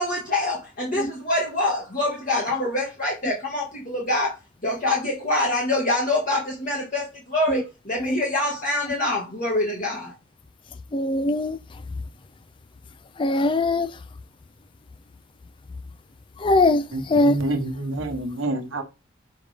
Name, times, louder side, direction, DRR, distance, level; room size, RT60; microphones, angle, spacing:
voice 1, 0.0-4.4 4.6-10.1, left 1 dB, 40° left, 1.7 m, -25 dB
voice 2, 10.9-11.6 13.2-13.9 16.4-17.4, left 2 dB, 25° left, 0.3 m, -21 dB
voice 3, 16.9-18.8, right 1 dB, 70° right, 1.2 m, -28 dB
6.4 x 5.0 x 3.4 m
head